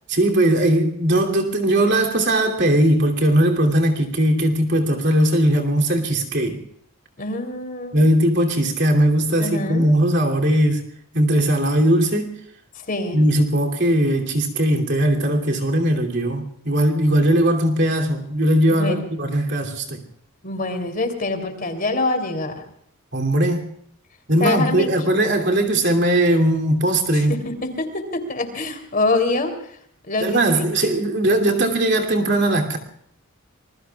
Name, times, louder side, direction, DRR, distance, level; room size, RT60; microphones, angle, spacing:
voice 1, 0.1-6.6 7.9-10.8 11.1-12.3 13.1-20.0 23.1-23.7 24.3-27.3 30.2-32.8, right 1 dB, 50° right, 2.9 m, -19 dB
voice 2, 7.2-8.0 9.4-9.9 12.7-13.2 18.7-19.0 20.4-22.6 24.4-24.9 27.3-29.5 30.0-30.6, left 2 dB, 40° left, 3.3 m, -25 dB
27.0 x 21.5 x 2.4 m
head